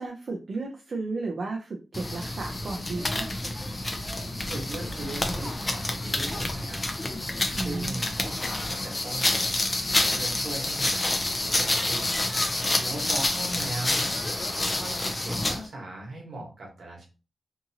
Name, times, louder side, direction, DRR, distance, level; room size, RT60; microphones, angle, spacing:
voice 1, 0.0-3.3 7.5-8.0, right 3 dB, 45° right, 0 dB, 0.5 m, -34 dB
sound 1, 1.9-15.7, left 2 dB, 20° left, 0.4 m, -28 dB
voice 2, 4.5-6.8 7.6-9.6 9.9-12.2 12.8-14.2 14.6-17.1, right 2 dB, 65° right, -1 dB, 1.2 m, -39 dB
2.7 x 2.6 x 2.7 m, 0.33 s
wide cardioid pair, 160°, 0 cm